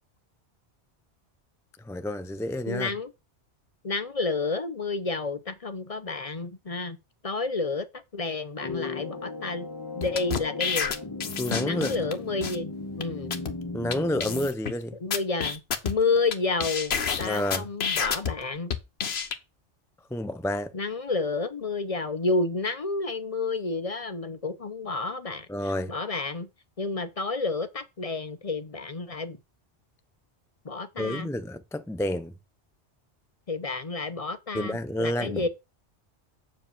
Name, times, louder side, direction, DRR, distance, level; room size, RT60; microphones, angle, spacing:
voice 1, 1.8-2.9 11.4-12.0 13.7-15.0 17.3-17.7 20.1-20.7 25.5-25.9 31.0-32.3 34.5-35.5, left 1 dB, 5° left, 0.3 m, -29 dB
voice 2, 2.7-3.1 3.8-7.0 7.2-7.9 8.1-9.7 10.0-10.9 11.6-12.7 13.0-13.3 15.0-18.7 20.7-25.5 25.9-26.5 26.8-29.4 30.6-31.3 33.5-35.5, left 3 dB, 35° left, 0.8 m, -30 dB
sound 1, 8.6-14.5, left 3 dB, 20° left, 1.1 m, -36 dB
sound 2, 10.0-12.1 12.4-12.6 13.0-13.1 13.3-13.5 13.9-14.0 14.2-14.7 15.1-16.3 16.6-18.3 18.7-19.3, left 6 dB, 65° left, 1.2 m, -29 dB
7.3 x 4.9 x 6.8 m
omnidirectional pair, 1.2 m